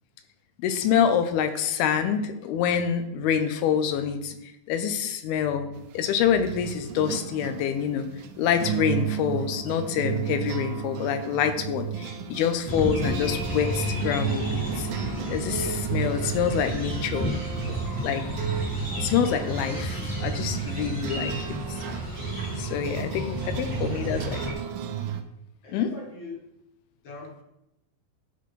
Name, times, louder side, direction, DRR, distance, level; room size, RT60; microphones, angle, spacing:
voice 1, 0.6-8.1 8.4-14.9 15.3-17.3 18.0-18.5 19.0-21.3 21.7-21.8 22.6-24.2 25.7-25.9, left 8 dB, 85° left, 9 dB, 2.6 m, -26 dB
sound 1, 5.8-25.2, right 9 dB, 80° right, 2.0 m, -33 dB
sound 2, 12.6-24.5, equal, 20° left, 0.6 m, -32 dB
voice 2, 23.4-24.4 25.6-26.4 27.0-27.4, left 3 dB, 60° left, -3 dB, 1.6 m, -43 dB
12.0 x 4.3 x 3.2 m, 0.87 s
omnidirectional pair, 4.4 m